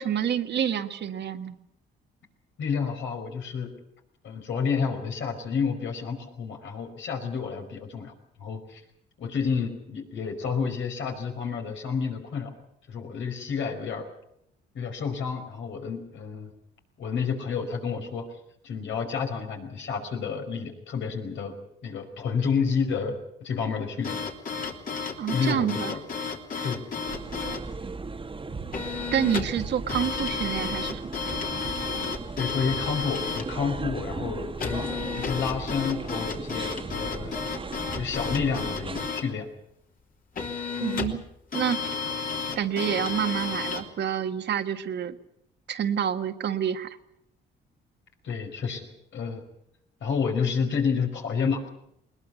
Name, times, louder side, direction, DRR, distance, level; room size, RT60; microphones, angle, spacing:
voice 1, 0.0-1.5 25.2-26.0 29.1-31.1 40.8-41.2 41.5-41.8 42.5-45.2 45.7-47.0, right 9 dB, 60° right, 7 dB, 1.7 m, -28 dB
voice 2, 2.6-3.7 4.2-8.1 8.4-8.8 9.2-12.5 12.9-14.0 14.7-16.5 17.0-18.2 18.6-21.5 21.8-24.2 25.3-26.0 26.6-26.8 32.4-37.3 37.9-39.5 48.2-48.9 49.1-49.4 50.0-51.7, left 5 dB, 70° left, 4 dB, 5.0 m, -30 dB
sound 1, 24.0-27.6 28.7-29.6 29.9-33.5 34.6-39.3 40.4-41.2 41.5-43.9, left 5 dB, 45° left, 3.2 m, -32 dB
sound 2, 27.1-39.1, right 3 dB, 25° right, 1.4 m, -37 dB
20.5 x 20.5 x 8.4 m, 0.77 s
cardioid pair, 90°, 20 cm